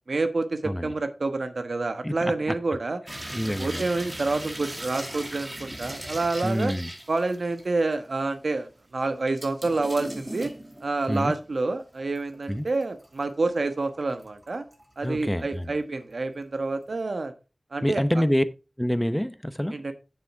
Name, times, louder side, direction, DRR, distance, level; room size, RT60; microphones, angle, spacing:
voice 1, 0.1-3.0 3.6-6.7 7.1-10.5 10.8-14.6 15.0-17.3 17.7-18.0 19.7-19.9, right 3 dB, 80° right, 1.1 m, -28 dB
voice 2, 2.0-2.5 3.4-3.8 6.4-6.9 11.1-11.3 12.5-12.6 15.0-15.8 17.8-18.4 18.8-19.7, equal, 5° left, 0.8 m, -26 dB
sound 1, 3.1-7.8 8.2-8.3 9.3-11.5 11.9-13.2 13.6-14.8 15.2-15.7 16.0-16.1, right 1 dB, 30° right, 2.4 m, -39 dB
9.3 x 7.4 x 3.5 m
wide cardioid pair, 55°, 0 cm